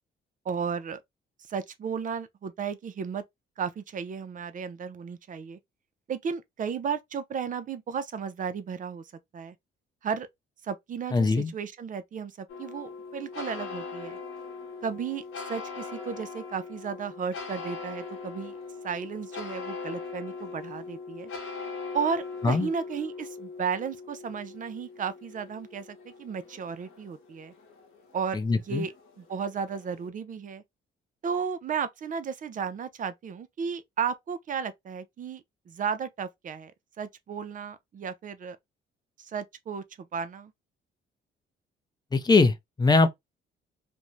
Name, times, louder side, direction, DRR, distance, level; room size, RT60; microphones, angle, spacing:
voice 1, 0.4-1.0 1.5-3.2 3.6-5.6 6.1-9.6 10.0-10.3 10.6-14.2 14.8-18.5 18.8-21.3 21.9-27.5 28.1-30.6 31.2-36.7 37.0-38.6 39.2-39.8 40.1-40.5, right 6 dB, 40° right, 0.5 m, -34 dB
voice 2, 11.1-11.5 22.4-22.7 28.5-28.8 42.1-42.5 42.8-43.1, left 3 dB, 20° left, 0.5 m, -21 dB
sound 1, 12.5-30.1, left 4 dB, 80° left, 0.8 m, -41 dB
2.6 x 2.1 x 3.0 m
cardioid pair, 90°, 20 cm